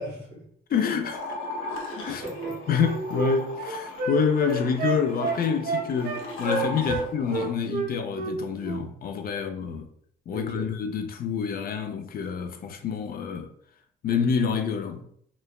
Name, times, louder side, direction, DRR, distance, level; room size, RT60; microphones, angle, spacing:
voice 1, 0.0-0.8 2.0-2.9 6.8-7.0 10.3-10.7, equal, 80° right, 1.4 m, -39 dB
voice 2, 0.7-1.4 1.9-2.2 2.7-9.9 10.3-13.5 14.0-15.1, left 6 dB, 50° left, 0.4 m, -27 dB
sound 1, 1.0-7.5, left 2 dB, 90° left, 0.7 m, -37 dB
Wind instrument woodwind instrument, 2.4-7.0 7.3-8.4 8.6-8.8, right 4 dB, 50° right, 0.5 m, -29 dB
3.0 x 2.1 x 2.3 m
cardioid pair, 90°, 20 cm